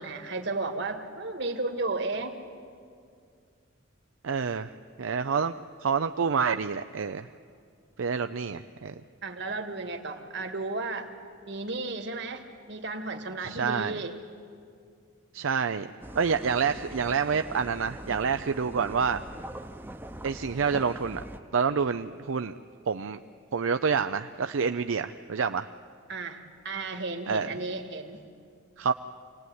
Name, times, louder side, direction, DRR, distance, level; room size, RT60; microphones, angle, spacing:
voice 1, 0.0-2.3 9.2-11.1 11.4-14.1 26.1-28.2, right 3 dB, 60° right, 6 dB, 1.9 m, -34 dB
voice 2, 4.2-4.7 5.0-7.3 8.0-8.9 13.4-14.0 15.3-15.9 16.1-19.2 20.2-21.2 21.5-22.5 22.9-23.2 23.5-25.7 27.3-27.5 28.8-28.9, right 6 dB, 80° right, 9 dB, 0.5 m, -28 dB
sound 1, 16.0-21.4, right 1 dB, 10° right, 0.8 m, -42 dB
25.5 x 18.5 x 9.5 m, 2.3 s
head